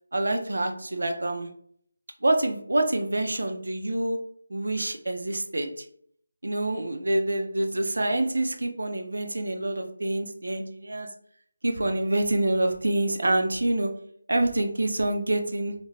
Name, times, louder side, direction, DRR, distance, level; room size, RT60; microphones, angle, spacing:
voice 1, 0.1-1.5 2.2-4.2 4.5-5.8 6.4-11.1 11.6-13.9 14.3-15.7, right 1 dB, 80° right, 5 dB, 0.5 m, -26 dB
2.4 x 2.1 x 3.2 m, 0.62 s
figure-of-eight pair, 170°, 0 cm